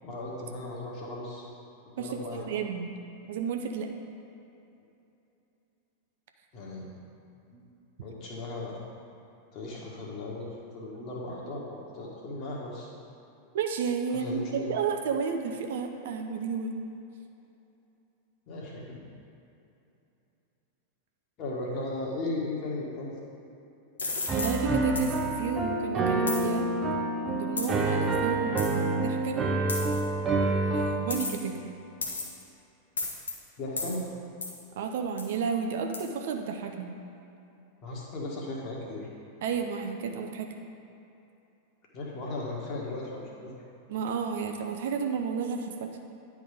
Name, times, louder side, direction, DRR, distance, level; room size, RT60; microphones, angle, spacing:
voice 1, 0.0-1.4 2.0-2.6 6.5-6.9 7.5-7.6 8.0-8.7 9.5-12.9 14.1-14.7 18.5-19.0 21.4-23.2 33.6-34.0 37.8-39.1 41.9-43.5, left 2 dB, 40° left, -3 dB, 1.6 m, -36 dB
voice 2, 2.0-2.9 3.3-3.9 13.5-16.7 24.3-26.7 27.2-29.5 30.4-31.6 34.8-36.9 39.4-40.5 43.9-46.0, right 6 dB, 55° right, 4 dB, 0.6 m, -32 dB
sound 1, 24.0-24.6 25.0-25.2 26.3-26.4 27.6-27.8 28.6-28.7 29.7-30.0 31.1-31.5 32.0-32.4 33.0-33.3 33.8-34.0 34.4-34.6 35.2-35.3 35.9-36.0, left 3 dB, 70° left, 1.0 m, -33 dB
Piano, 24.3-31.1, right 2 dB, 20° right, 0.8 m, -27 dB
10.0 x 3.7 x 5.1 m, 2.8 s
figure-of-eight pair, 90°, 0 cm